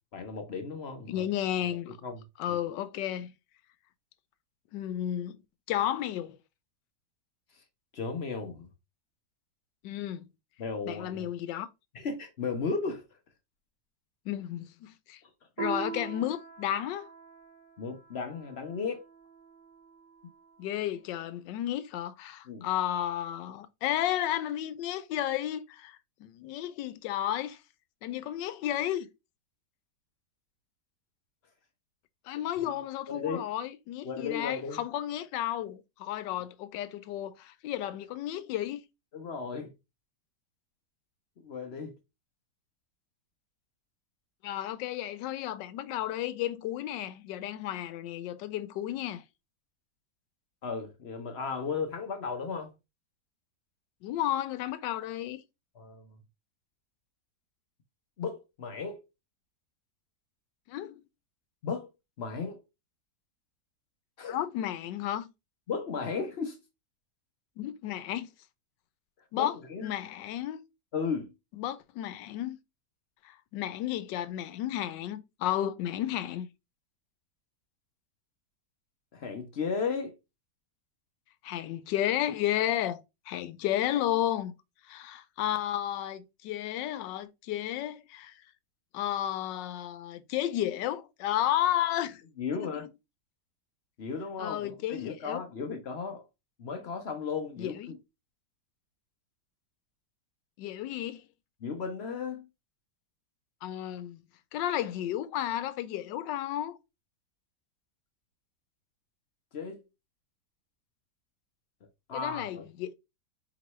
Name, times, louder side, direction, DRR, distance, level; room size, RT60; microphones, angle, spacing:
voice 1, 0.1-1.3 1.7-2.6 7.9-8.7 10.6-11.3 11.9-13.0 15.2-15.3 17.8-19.0 22.5-22.6 32.6-32.7 33.1-33.5 34.0-34.8 39.1-39.7 41.4-42.0 50.6-52.7 55.8-56.2 58.2-59.0 61.6-61.9 62.2-62.6 64.2-64.4 65.7-66.6 69.4-69.9 70.9-71.3 79.1-80.2 92.4-92.9 94.0-96.2 96.6-98.0 101.6-102.5 109.5-109.8 112.1-112.7, left 5 dB, 55° left, 0.7 m, -35 dB
voice 2, 1.1-2.0 2.4-3.3 4.7-5.4 5.7-6.4 9.8-10.2 10.9-11.7 14.3-15.2 15.6-17.1 20.6-27.6 28.0-29.1 32.3-38.8 44.4-49.2 54.0-55.4 60.7-61.0 64.3-65.3 67.6-68.3 69.3-69.5 69.8-70.6 71.5-72.6 73.2-76.5 81.4-84.5 84.9-88.4 88.9-92.2 92.5-92.7 94.4-95.4 97.6-97.9 100.6-101.2 103.6-104.2 104.5-106.8 112.1-113.0, left 12 dB, 85° left, 1.2 m, -32 dB
Piano, 15.6-20.5, right 5 dB, 15° right, 1.5 m, -42 dB
4.7 x 3.0 x 2.9 m
omnidirectional pair, 1.9 m